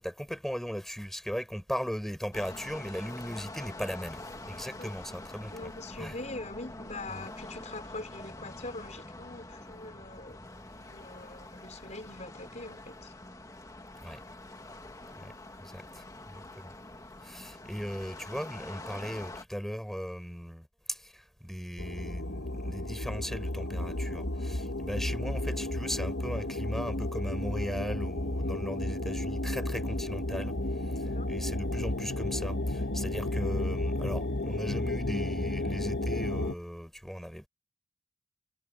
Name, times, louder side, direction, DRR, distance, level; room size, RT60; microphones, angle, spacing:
voice 1, 0.0-4.2 4.5-5.7 6.0-6.2 7.1-7.3 14.0-14.2 15.2-15.3 15.6-16.8 17.2-30.5 30.8-37.5, equal, ahead, 5.4 m, -38 dB
sound 1, 2.3-19.4, left 2 dB, 20° left, 1.8 m, -45 dB
voice 2, 5.5-10.4 10.8-13.1 15.2-15.4 31.1-31.3, left 2 dB, 40° left, 5.4 m, -43 dB
sound 2, 21.8-36.5, left 1 dB, 65° left, 1.7 m, -32 dB
head